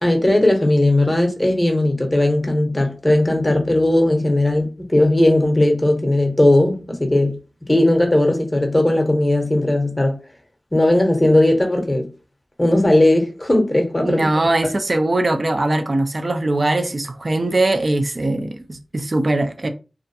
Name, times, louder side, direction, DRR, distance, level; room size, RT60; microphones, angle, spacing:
voice 1, 0.0-7.4 7.7-10.2 10.7-12.1 12.6-14.3 14.6-14.7, left 1 dB, 20° left, 0.7 m, -17 dB
voice 2, 14.0-19.7, right 2 dB, 50° right, 0.4 m, -21 dB
2.4 x 2.2 x 2.6 m
cardioid pair, 45°, 0 cm